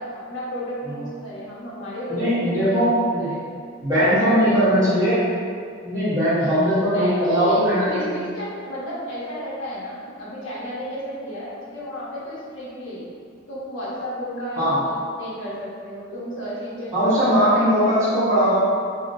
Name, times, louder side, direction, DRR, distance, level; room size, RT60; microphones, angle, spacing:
voice 1, 0.0-2.9 3.2-3.4 3.9-4.9 6.4-13.0 13.5-17.5 17.8-18.1 18.4-18.5, equal, 70° left, -8 dB, 1.0 m, -32 dB
voice 2, 2.1-3.3 3.8-5.3 5.8-8.1 14.6-14.8 16.9-18.6, equal, 15° right, -14 dB, 1.1 m, -19 dB
3.0 x 2.9 x 2.7 m, 2.2 s
head